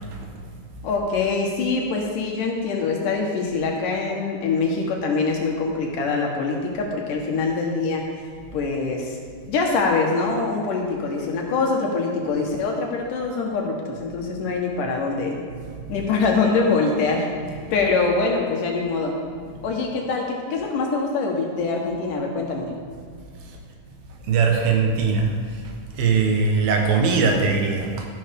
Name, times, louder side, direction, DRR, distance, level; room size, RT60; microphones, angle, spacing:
voice 1, 0.8-8.0 8.5-9.2 9.5-15.4 15.9-19.2 19.6-22.7, left 4 dB, 70° left, 0 dB, 2.9 m, -24 dB
voice 2, 15.5-16.1 17.5-17.9 19.5-19.7 23.5-23.6 24.3-25.3 25.9-28.1, right 5 dB, 90° right, 1 dB, 3.2 m, -22 dB
13.0 x 11.5 x 3.7 m, 2.1 s
omnidirectional pair, 4.0 m